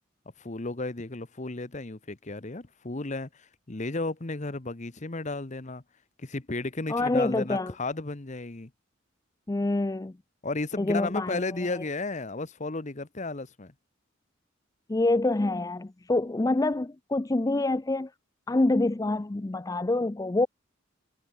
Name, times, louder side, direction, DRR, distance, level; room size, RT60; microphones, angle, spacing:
voice 1, 0.4-5.8 6.2-8.7 10.4-13.7, left 2 dB, 35° left, 1.0 m, -33 dB
voice 2, 6.9-7.7 9.5-10.1 10.8-11.4 11.7-11.8 14.9-18.1 18.5-20.5, left 2 dB, 15° left, 0.4 m, -26 dB
head